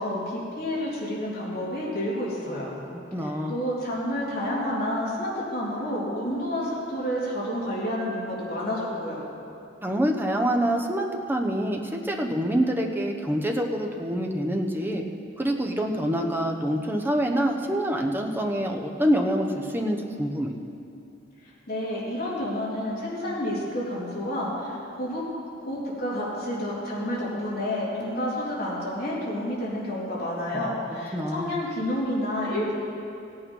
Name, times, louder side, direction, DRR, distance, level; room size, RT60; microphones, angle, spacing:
voice 1, 0.0-2.7 3.2-9.2 21.7-25.2 25.6-32.7, left 1 dB, 55° left, -6 dB, 3.3 m, -29 dB
voice 2, 3.1-3.5 9.8-15.0 15.4-20.5 31.1-31.5, equal, 10° right, 2 dB, 0.9 m, -26 dB
16.5 x 8.7 x 5.4 m, 2.6 s
head